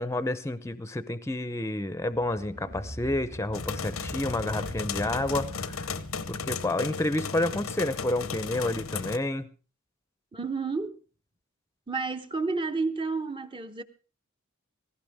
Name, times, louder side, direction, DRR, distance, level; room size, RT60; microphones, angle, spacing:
voice 1, 0.0-5.9 6.3-9.5, left 1 dB, 15° left, 0.7 m, -30 dB
sound 1, 2.0-6.8, equal, 50° right, 3.3 m, -42 dB
sound 2, 3.5-9.2, left 5 dB, 90° left, 0.9 m, -35 dB
voice 2, 10.3-11.0 11.9-13.8, right 4 dB, 25° right, 0.9 m, -30 dB
17.5 x 16.0 x 3.6 m
head